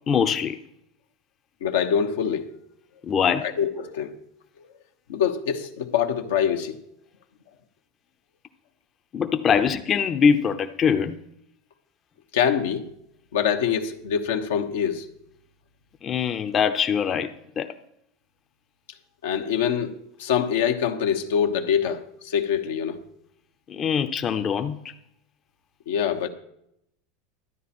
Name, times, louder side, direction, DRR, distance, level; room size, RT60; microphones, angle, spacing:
voice 1, 0.1-0.6 3.1-3.4 9.1-11.2 16.0-17.7 23.7-24.9, left 7 dB, 35° left, 0.7 m, -23 dB
voice 2, 1.6-2.5 3.6-4.1 4.6-4.7 5.1-6.8 12.3-12.9 13.3-15.1 19.2-19.9 20.2-23.0 25.9-26.3, left 8 dB, 80° left, 1.1 m, -24 dB
12.5 x 9.6 x 4.3 m
hypercardioid pair, 100°, 0 cm